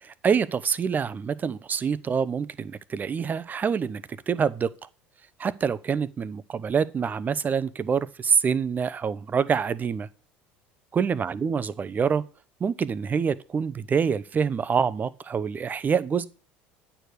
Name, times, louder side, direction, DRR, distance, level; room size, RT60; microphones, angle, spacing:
voice 1, 0.0-4.9 5.4-10.1 10.9-12.2 12.6-16.2, right 6 dB, 30° right, 0.6 m, -26 dB
8.9 x 4.7 x 6.7 m
hypercardioid pair, 85°, 6 cm